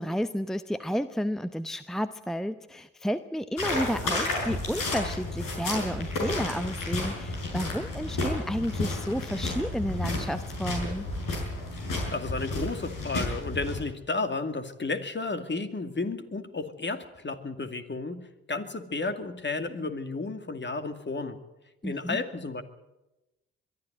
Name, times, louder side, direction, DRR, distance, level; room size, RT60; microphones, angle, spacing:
voice 1, 0.0-11.1 21.8-22.2, equal, ahead, 12 dB, 0.9 m, -31 dB
sound 1, 3.6-13.8, left 2 dB, 65° left, 6.6 m, -32 dB
voice 2, 12.1-21.4 21.8-22.6, left 3 dB, 30° left, 8 dB, 2.3 m, -32 dB
22.5 x 13.0 x 9.5 m, 0.99 s
hypercardioid pair, 40°, 36 cm